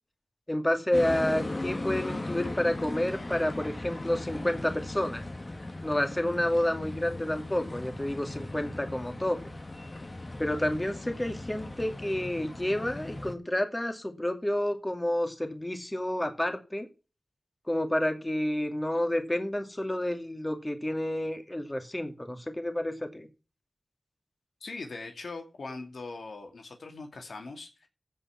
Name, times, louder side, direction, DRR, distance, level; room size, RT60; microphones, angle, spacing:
voice 1, 0.5-5.2 5.8-9.4 10.4-16.9 17.7-23.3, left 1 dB, 20° left, 5 dB, 2.4 m, -30 dB
sound 1, 0.9-13.3, left 2 dB, 35° left, 1.8 m, -38 dB
voice 2, 24.6-27.9, left 3 dB, 80° left, 4 dB, 2.3 m, -41 dB
15.5 x 5.5 x 5.8 m, 0.33 s
wide cardioid pair, 60°, 0 cm